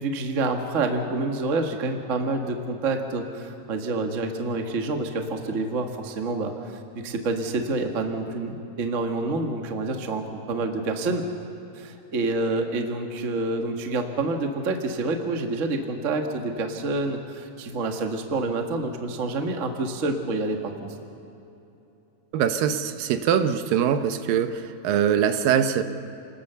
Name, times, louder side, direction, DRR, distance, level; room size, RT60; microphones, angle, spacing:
voice 1, 0.0-11.2 11.7-20.9, right 3 dB, 50° right, 4 dB, 0.9 m, -28 dB
voice 2, 22.3-25.8, right 8 dB, 75° right, 9 dB, 2.6 m, -23 dB
30.0 x 19.5 x 6.9 m, 2.9 s
omnidirectional pair, 4.2 m